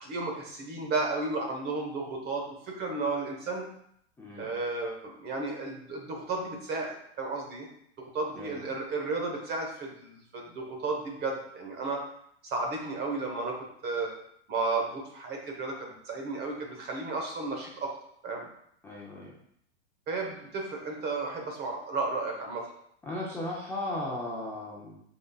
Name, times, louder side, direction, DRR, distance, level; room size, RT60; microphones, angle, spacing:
voice 1, 0.0-3.7 4.4-7.7 8.0-12.0 12.4-14.1 14.5-17.9 18.2-18.4 20.1-22.7, right 3 dB, 30° right, 1 dB, 1.1 m, -33 dB
voice 2, 4.2-4.5 8.3-8.6 18.8-19.3 23.1-25.0, left 1 dB, 5° left, -6 dB, 0.6 m, -36 dB
5.0 x 4.0 x 2.4 m, 0.71 s
supercardioid pair, 135°, 34 cm